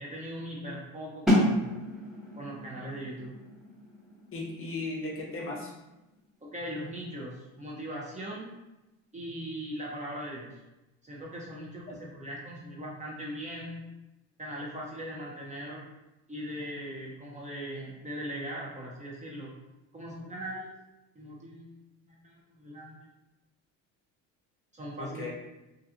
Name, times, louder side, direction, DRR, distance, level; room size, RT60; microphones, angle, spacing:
voice 1, 0.0-1.7 2.4-3.4 6.4-8.5 9.1-10.6 11.0-13.8 14.4-15.8 16.3-19.5 19.9-20.7 21.2-21.7 22.0-22.3 22.6-23.1 24.7-25.3, equal, 20° right, -4 dB, 0.5 m, -39 dB
sound 1, 1.3-7.0, left 1 dB, ahead, 1.0 m, -31 dB
voice 2, 4.3-5.7 11.9-12.0 25.0-25.3, left 2 dB, 35° left, -2 dB, 0.8 m, -36 dB
2.4 x 2.2 x 2.7 m, 0.98 s
supercardioid pair, 85°, 37 cm